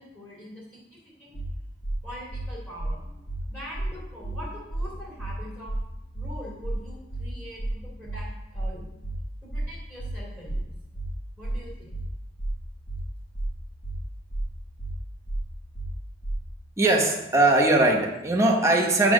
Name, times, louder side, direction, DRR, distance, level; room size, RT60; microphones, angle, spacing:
voice 1, 0.0-1.4 2.0-3.1 3.4-8.3 8.5-8.9 9.4-10.7 11.4-11.9, equal, 10° left, -6 dB, 2.4 m, -43 dB
sound 1, 1.3-1.5 1.8-2.0 2.3-2.5 2.8-2.9 3.3-3.4 3.7-3.9 4.2-4.4 4.7-4.9 5.2-5.3 5.7-5.8 6.1-6.3 6.6-6.8 7.1-7.3 7.6-7.7 8.1-8.2 8.5-8.7 9.0-9.2 9.5-9.7 10.0-10.1 10.5-10.6 10.9-11.1 11.4-11.6 11.9-12.1 12.4-12.5 12.9-13.0 13.3-13.5 13.8-14.0 14.3-14.5 14.8-14.9 15.3-15.4 15.7-15.9 16.2-16.4, right 1 dB, 80° left, 1.2 m, -30 dB
voice 2, 16.8-19.1, right 2 dB, 15° right, 0 dB, 0.9 m, -20 dB
7.9 x 3.5 x 6.3 m, 0.91 s
head